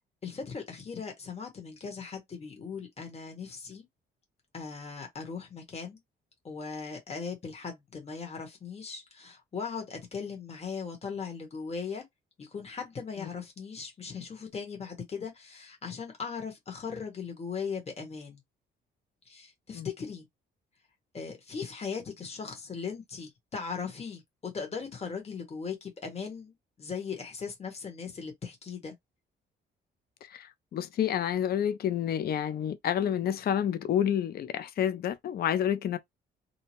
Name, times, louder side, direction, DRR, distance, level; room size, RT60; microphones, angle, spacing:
voice 1, 0.2-3.8 4.5-6.0 6.4-12.0 12.4-18.4 19.3-20.2 21.1-28.9, left 5 dB, 30° left, 1.2 m, -38 dB
voice 2, 30.3-36.0, left 9 dB, 50° left, 0.5 m, -29 dB
2.7 x 2.0 x 2.9 m
cardioid pair, 90°, 20 cm